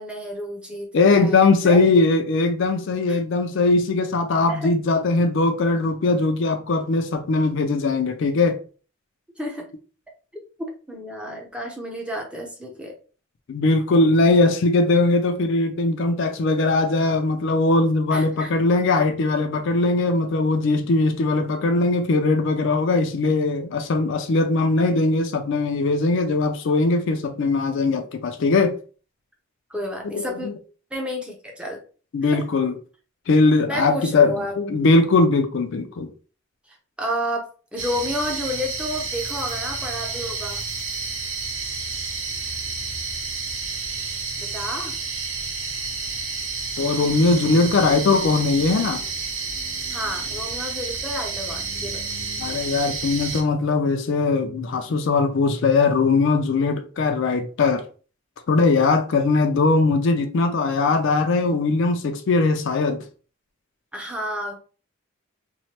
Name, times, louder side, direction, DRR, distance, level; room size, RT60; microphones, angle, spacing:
voice 1, 0.0-1.8 3.1-3.2 4.5-4.7 9.4-9.7 10.9-12.9 18.1-18.5 29.7-30.5 30.9-31.8 32.2-32.4 33.6-34.5 36.7-40.6 44.4-45.0 49.9-52.0 63.9-64.6, equal, 5° right, 0.6 m, -31 dB
voice 2, 0.9-8.6 13.5-28.8 30.0-30.5 32.1-32.7 33.3-36.1 46.8-49.0 52.4-57.8 58.5-63.0, left 3 dB, 60° left, 0.4 m, -20 dB
sound 1, 37.8-53.4, right 4 dB, 65° right, 0.8 m, -30 dB
3.1 x 2.1 x 2.8 m
head